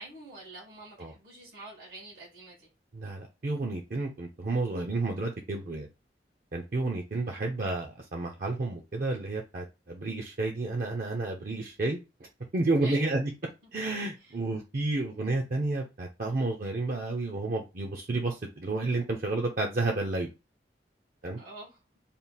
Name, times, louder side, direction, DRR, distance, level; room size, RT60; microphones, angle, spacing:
voice 1, 0.0-2.7 7.3-7.4 12.8-13.1 14.2-14.4 21.4-21.8, right 2 dB, 80° right, 1.8 m, -46 dB
voice 2, 2.9-5.9 6.5-12.0 12.5-13.3 13.7-20.3 21.2-21.4, right 2 dB, 50° right, 0.5 m, -31 dB
3.6 x 2.4 x 4.0 m
head